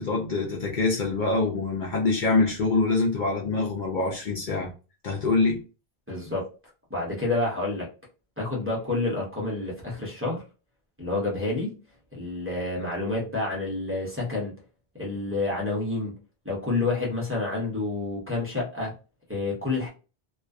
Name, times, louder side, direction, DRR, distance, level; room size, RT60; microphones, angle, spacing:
voice 1, 0.0-4.7 5.0-5.6, left 3 dB, 60° left, 0.6 m, -25 dB
voice 2, 6.1-6.5 6.9-7.9 8.4-10.4 11.0-11.7 12.1-14.5 15.0-16.1 16.4-18.9 19.3-19.9, left 2 dB, 15° right, 0.7 m, -28 dB
2.3 x 2.3 x 2.3 m
omnidirectional pair, 1.0 m